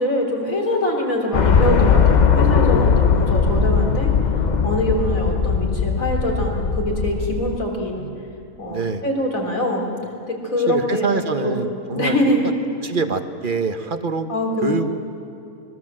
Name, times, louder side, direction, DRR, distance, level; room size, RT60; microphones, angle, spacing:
voice 1, 0.0-4.1 4.6-8.1 8.6-9.9 10.3-11.1 11.4-11.7 11.9-12.4 14.3-14.9, left 1 dB, 55° left, 1 dB, 4.1 m, -23 dB
sound 1, 1.3-7.5, left 6 dB, 35° left, 0.8 m, -18 dB
voice 2, 7.8-8.2 8.7-9.0 10.7-12.2 12.8-14.3 14.6-14.9, right 4 dB, 35° right, 8 dB, 1.1 m, -25 dB
25.5 x 22.0 x 7.6 m, 2.7 s
omnidirectional pair, 1.7 m